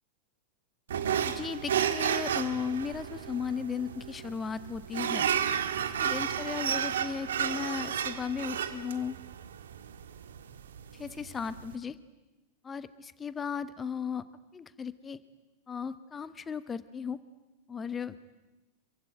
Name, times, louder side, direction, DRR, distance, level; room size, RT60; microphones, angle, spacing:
sound 1, 0.9-11.7, right 8 dB, 65° right, 1.7 m, -32 dB
voice 1, 1.2-5.3 6.0-9.2 10.9-12.0 12.6-14.2 14.5-15.2 15.7-17.2 17.7-18.1, left 6 dB, 20° left, 14 dB, 1.1 m, -36 dB
27.0 x 24.0 x 9.2 m, 1.0 s
figure-of-eight pair, 90°, 0 cm